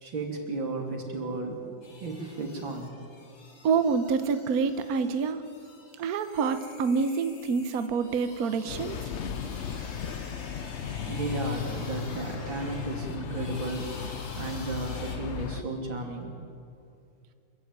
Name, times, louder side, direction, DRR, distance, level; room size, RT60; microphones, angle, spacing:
voice 1, 0.0-1.7 2.0-2.9 3.3-3.4 11.1-16.3, right 3 dB, 85° right, 2 dB, 3.7 m, -34 dB
sound 1, 1.8-15.2, left 3 dB, 85° left, 3.6 m, -48 dB
voice 2, 3.6-5.4 6.0-9.0, right 5 dB, 55° right, 9 dB, 1.3 m, -27 dB
sound 2, 8.7-15.6, left 8 dB, 60° left, 0.7 m, -36 dB
26.0 x 15.0 x 9.5 m, 2.5 s
omnidirectional pair, 2.1 m